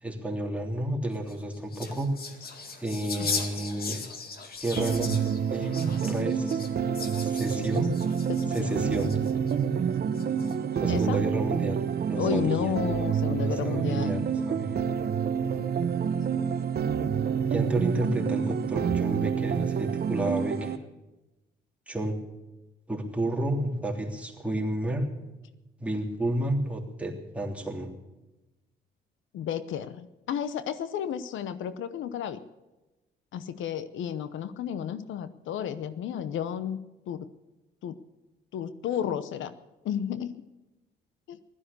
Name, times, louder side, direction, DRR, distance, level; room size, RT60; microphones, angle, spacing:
voice 1, 0.0-2.1 2.8-4.1 4.6-5.1 5.5-6.6 7.2-7.9 8.5-9.1 10.8-12.7 13.4-14.8 17.5-20.8 21.9-22.2 22.9-25.1 25.8-27.9, right 1 dB, 5° right, -1 dB, 3.3 m, -31 dB
sound 1, 1.1-9.5 10.1-10.8, left 4 dB, 50° left, 2.2 m, -38 dB
sound 2, 4.8-20.8, right 7 dB, 55° right, 0.9 m, -28 dB
voice 2, 8.3-8.8 10.9-11.2 12.2-14.2 29.3-32.4 33.3-36.8 37.1-37.3 37.8-38.0 38.5-39.6 39.8-40.4 41.3-41.4, left 9 dB, 75° left, 13 dB, 0.9 m, -32 dB
15.5 x 12.5 x 6.8 m, 1.1 s
cardioid pair, 90°, 20 cm